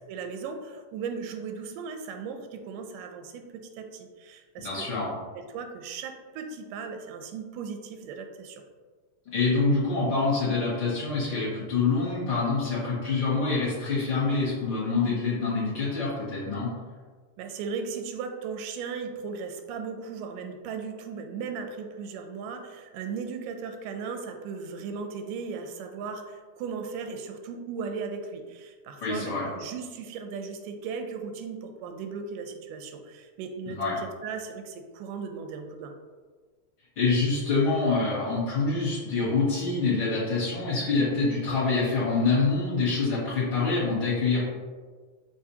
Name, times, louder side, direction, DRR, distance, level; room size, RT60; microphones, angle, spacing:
voice 1, 0.0-4.9 5.3-8.6 17.4-35.9, right 5 dB, 85° right, 5 dB, 2.1 m, -37 dB
voice 2, 4.6-5.1 9.3-16.7 29.0-29.4 33.7-34.0 37.0-44.4, left 4 dB, 55° left, -9 dB, 1.7 m, -26 dB
6.5 x 2.5 x 2.7 m, 1.5 s
omnidirectional pair, 3.6 m